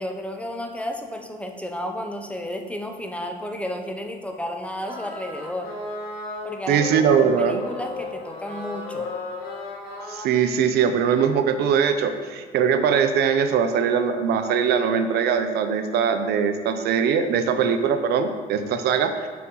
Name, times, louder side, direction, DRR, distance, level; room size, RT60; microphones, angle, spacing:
voice 1, 0.0-5.7 6.4-9.1, left 1 dB, 5° left, 3 dB, 0.6 m, -32 dB
sound 1, 4.8-10.3, left 3 dB, 65° left, 1.8 m, -34 dB
voice 2, 6.7-7.6 10.1-19.3, right 7 dB, 75° right, 8 dB, 0.5 m, -21 dB
6.9 x 6.3 x 3.0 m, 1.5 s
cardioid pair, 110°, 17 cm